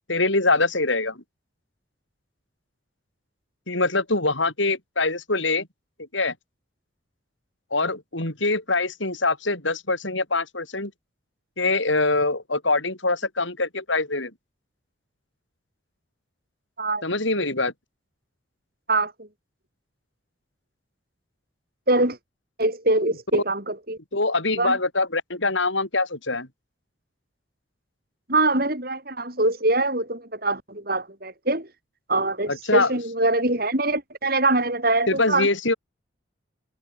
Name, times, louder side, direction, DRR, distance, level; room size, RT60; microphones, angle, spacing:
voice 1, 0.1-1.2 3.7-5.7 6.1-6.3 7.7-10.9 11.6-14.3 17.0-17.7 24.1-26.5 32.5-32.9 35.1-35.7, left 3 dB, 75° left, 6.5 m, -24 dB
voice 2, 18.9-19.3 21.9-22.2 22.6-24.0 24.6-24.8 28.3-31.7 32.1-35.5, right 2 dB, 50° right, 6.9 m, -23 dB
head